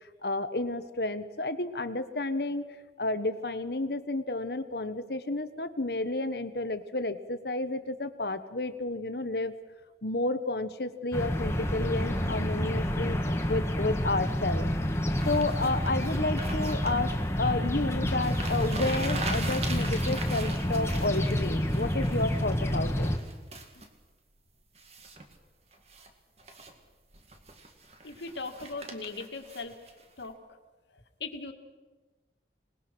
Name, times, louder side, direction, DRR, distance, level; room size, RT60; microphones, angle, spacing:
voice 1, 0.2-2.6 3.0-9.5 10.0-13.2 13.5-14.7 15.2-17.1 17.4-23.1, left 2 dB, 65° left, 11 dB, 1.3 m, -31 dB
sound 1, 11.1-23.2, equal, 15° left, 1.7 m, -29 dB
sound 2, 15.1-17.0 17.9-18.0 18.2-22.5 22.9-23.9 24.7-25.3 25.7-26.1 26.4-26.7 27.1-30.3, right 3 dB, 35° right, 2.2 m, -41 dB
voice 2, 28.0-29.8 30.2-30.4 30.9-31.5, left 3 dB, 85° left, 5 dB, 2.3 m, -39 dB
27.0 x 20.0 x 6.2 m, 1.3 s
head